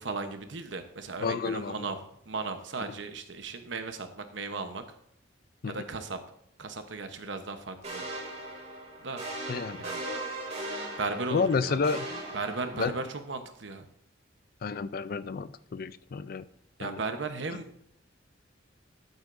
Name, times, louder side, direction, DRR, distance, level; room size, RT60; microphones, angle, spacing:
voice 1, 0.0-2.0 2.3-4.8 5.7-6.2 6.6-8.1 9.0-9.2 9.8-10.0 11.0-11.8 12.3-13.9 16.8-17.8, right 3 dB, 70° right, 8 dB, 0.9 m, -36 dB
voice 2, 1.2-1.9 5.6-5.8 9.5-9.8 11.3-12.0 12.7-12.9 14.6-16.4 16.8-17.0, left 4 dB, 50° left, 15 dB, 0.4 m, -30 dB
sound 1, 7.8-13.2, right 1 dB, 35° right, 2.6 m, -38 dB
13.5 x 7.9 x 2.6 m, 0.71 s
head